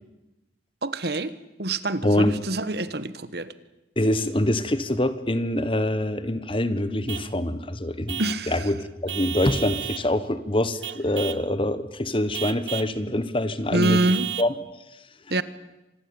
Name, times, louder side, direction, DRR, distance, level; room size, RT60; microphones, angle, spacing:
voice 1, 0.8-1.3 1.6-3.5 8.2-8.5 13.7-14.3 15.3-15.4, right 2 dB, 60° right, 15 dB, 1.3 m, -25 dB
voice 2, 2.0-2.4 4.0-8.2 8.5-8.8 9.0-14.0 14.4-14.5, left 1 dB, 30° left, 13 dB, 1.4 m, -24 dB
Vehicle horn car horn honking / Truck, 7.1-7.3 8.1-8.5 9.1-10.1 10.8-11.5 12.3-13.0 13.8-14.6, right 11 dB, 80° right, 1.0 m, -33 dB
26.0 x 20.5 x 8.9 m, 0.97 s
head